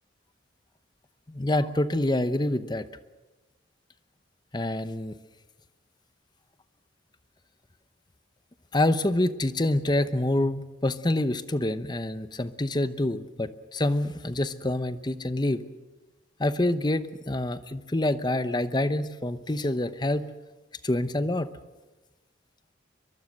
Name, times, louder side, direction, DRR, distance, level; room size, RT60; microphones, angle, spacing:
voice 1, 1.3-2.8 4.5-5.1 8.7-15.6 16.4-20.3 20.8-21.5, left 1 dB, 25° left, 13 dB, 0.9 m, -26 dB
23.5 x 23.0 x 6.6 m, 1.1 s
head